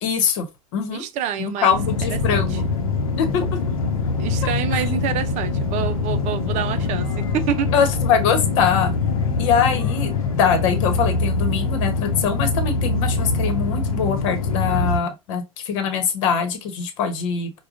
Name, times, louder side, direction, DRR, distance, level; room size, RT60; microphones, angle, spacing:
voice 1, 0.0-0.5 0.7-1.0 1.4-2.7 3.2-3.5 4.7-4.8 7.7-8.9 9.4-17.6, left 7 dB, 60° left, 1.0 m, -23 dB
voice 2, 0.9-1.8 2.1-2.6 4.2-7.7, right 9 dB, 40° right, 0.5 m, -27 dB
sound 1, 1.7-15.0, left 4 dB, 85° left, 0.7 m, -23 dB
4.8 x 2.2 x 2.5 m
hypercardioid pair, 90°, 18 cm